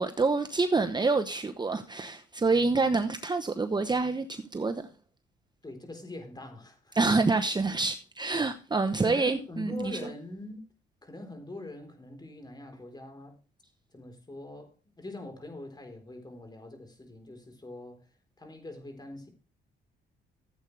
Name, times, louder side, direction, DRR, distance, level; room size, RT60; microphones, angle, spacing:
voice 1, 0.0-4.9 6.9-10.0, right 3 dB, 20° right, 0.9 m, -27 dB
voice 2, 5.6-7.2 8.3-8.5 9.0-10.6 11.0-13.4 13.9-18.1 18.4-19.3, left 2 dB, 20° left, 4.0 m, -43 dB
15.0 x 8.3 x 3.3 m
cardioid pair, 90°, 20 cm